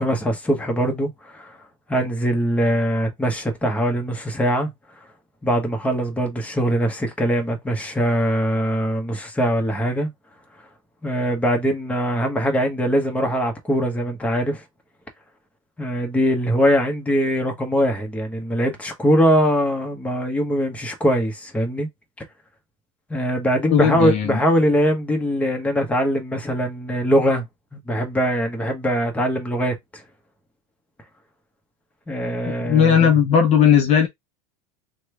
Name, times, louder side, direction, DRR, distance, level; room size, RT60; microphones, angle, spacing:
voice 1, 0.0-1.5 1.9-4.7 5.4-10.1 11.0-14.6 15.8-21.9 23.1-27.4 27.7-29.7 32.1-33.1, equal, 10° left, 1.0 m, -22 dB
voice 2, 23.7-24.4 32.5-34.1, left 8 dB, 40° left, 0.6 m, -17 dB
3.0 x 2.3 x 3.2 m
supercardioid pair, 105°, 17 cm